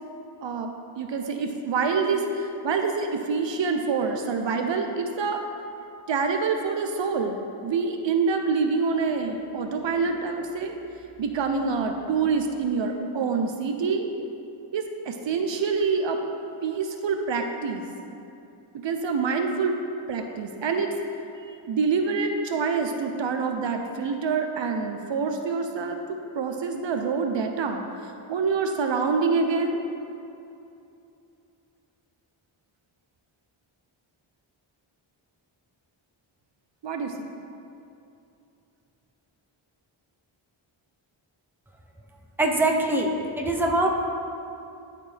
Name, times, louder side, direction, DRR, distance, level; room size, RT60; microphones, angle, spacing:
voice 1, 0.4-5.4 6.1-10.8 11.2-14.1 14.7-16.2 16.6-17.8 18.8-19.8 20.1-20.9 21.4-29.8 36.8-37.3, right 5 dB, 65° right, 4 dB, 0.6 m, -26 dB
voice 2, 42.4-43.1 43.4-43.9, right 2 dB, 5° right, 0 dB, 0.7 m, -22 dB
11.5 x 4.3 x 3.3 m, 2.8 s
wide cardioid pair, 85°, 49 cm